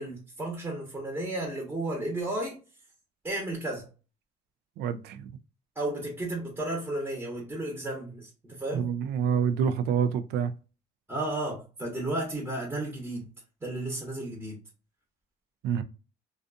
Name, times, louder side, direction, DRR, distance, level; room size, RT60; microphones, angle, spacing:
voice 1, 0.0-2.6 3.2-3.9 5.7-8.9 11.1-13.3 13.6-14.6, right 1 dB, 10° right, 1.0 m, -33 dB
voice 2, 4.8-5.3 8.7-10.5 15.6-15.8, right 7 dB, 80° right, 0.4 m, -27 dB
2.5 x 2.3 x 2.5 m
cardioid pair, 110°, 17 cm